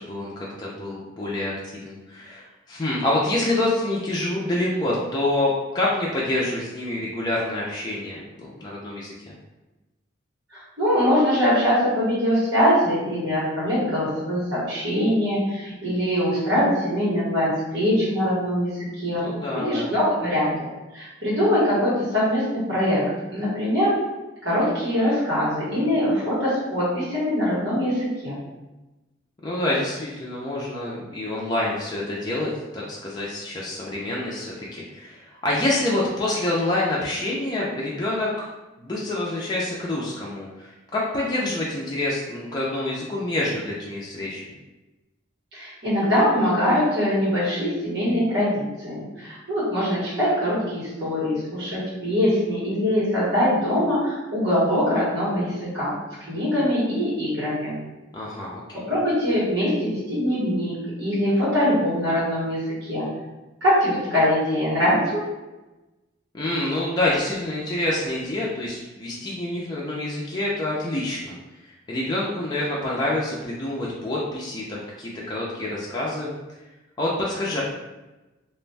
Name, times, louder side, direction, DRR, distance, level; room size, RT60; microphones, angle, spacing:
voice 1, 0.0-9.3 19.1-19.9 29.4-38.5 38.8-44.4 58.1-58.9 66.3-71.4 71.9-76.3 77.0-77.6, left 1 dB, 20° left, -5 dB, 0.4 m, -27 dB
voice 2, 10.5-19.2 19.5-20.5 20.9-23.0 23.3-23.9 24.4-28.4 45.5-55.9 56.3-57.8 58.9-63.0 63.6-65.2, equal, 65° right, -10 dB, 1.3 m, -23 dB
2.4 x 2.1 x 3.2 m, 1.1 s
head